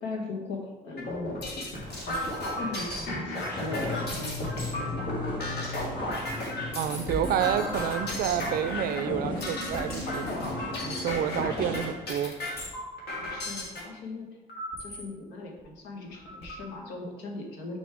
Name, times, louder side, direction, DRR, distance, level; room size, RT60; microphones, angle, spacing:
voice 1, 0.0-2.3 2.6-5.6 13.2-14.3 14.8-17.8, left 2 dB, 90° left, 0 dB, 1.4 m, -38 dB
sound 1, 1.0-13.8 14.5-15.0 15.6-15.7 16.0-16.6, left 1 dB, 70° left, 2.1 m, -34 dB
sound 2, 3.4-12.0, left 2 dB, 30° left, 2.1 m, -38 dB
voice 2, 6.8-10.4 10.8-12.3, right 10 dB, 65° right, 12 dB, 0.4 m, -29 dB
6.3 x 5.3 x 3.5 m, 1.2 s
cardioid pair, 110°, 17 cm